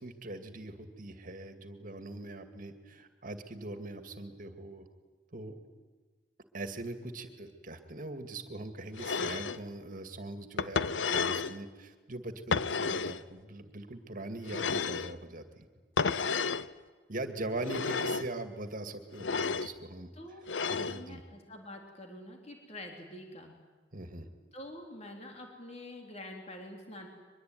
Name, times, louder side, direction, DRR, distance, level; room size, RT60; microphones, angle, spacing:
voice 1, 0.0-4.8 5.3-5.6 6.5-15.7 17.1-20.1 20.7-21.2 23.9-24.3, right 2 dB, 50° right, 8 dB, 2.3 m, -41 dB
sound 1, 9.0-9.6 10.6-11.6 12.5-13.2 14.5-15.1 16.0-16.7 17.6-18.3 19.2-19.7 20.5-21.0, left 5 dB, 80° left, 0.7 m, -31 dB
voice 2, 20.2-23.6 24.5-27.1, left 1 dB, 35° left, 2 dB, 3.8 m, -46 dB
24.0 x 22.0 x 9.4 m, 1.4 s
head